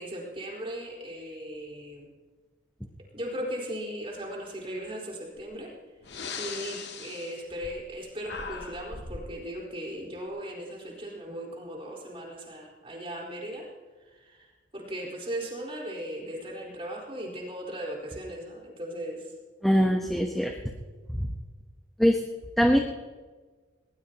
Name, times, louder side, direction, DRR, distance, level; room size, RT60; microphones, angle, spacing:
voice 1, 0.0-2.1 3.1-5.7 6.3-13.6 14.1-19.3, equal, 30° right, -2 dB, 4.5 m, -37 dB
Breathing, 5.4-5.5 6.0-8.0 8.2-9.3, left 5 dB, 60° left, 1.5 m, -39 dB
voice 2, 19.6-20.5 21.1-21.3 22.0-22.2 22.6-22.8, equal, ahead, 2 dB, 1.0 m, -22 dB
20.5 x 19.0 x 3.0 m, 1.3 s
head